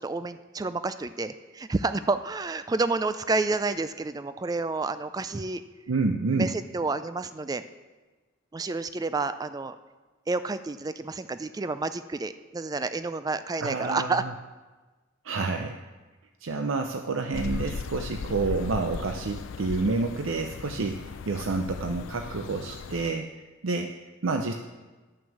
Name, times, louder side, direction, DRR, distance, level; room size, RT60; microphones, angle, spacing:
voice 1, 0.0-5.6 6.4-7.6 8.5-9.8 10.3-14.2, right 3 dB, 20° right, 12 dB, 0.3 m, -29 dB
voice 2, 5.9-6.5 13.6-14.2 15.2-15.8 16.4-23.3 23.6-23.9 24.2-24.5, right 3 dB, 75° right, 5 dB, 0.6 m, -29 dB
sound 1, 17.3-23.1, left 5 dB, 70° left, 0.4 m, -37 dB
11.0 x 6.1 x 7.1 m, 1.3 s
head